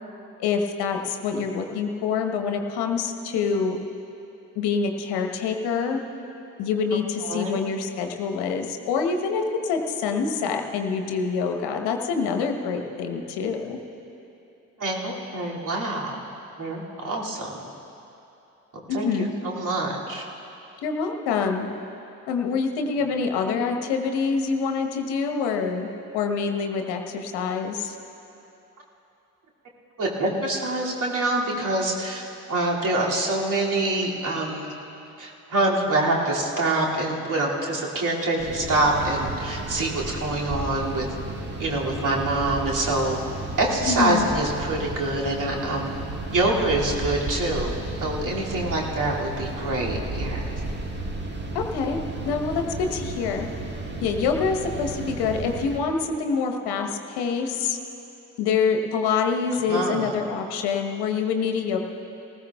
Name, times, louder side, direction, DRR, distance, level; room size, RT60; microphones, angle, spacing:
voice 1, 0.4-3.8 4.5-6.0 6.6-13.8 18.9-19.3 20.8-21.7 22.3-25.9 26.1-28.0 43.9-44.3 51.5-52.6 52.9-53.5 54.0-57.8 58.4-61.8, left 5 dB, 60° left, 4 dB, 1.2 m, -26 dB
voice 2, 7.2-7.6 14.8-16.2 16.6-17.5 18.9-20.2 30.0-34.7 35.2-41.1 41.6-43.2 43.6-46.0 46.3-50.5 59.7-60.2, right 2 dB, 45° right, -3 dB, 2.6 m, -25 dB
sound 1, 38.4-55.8, right 2 dB, 25° right, 1.7 m, -33 dB
19.5 x 15.0 x 2.4 m, 2.9 s
figure-of-eight pair, 45°, 44 cm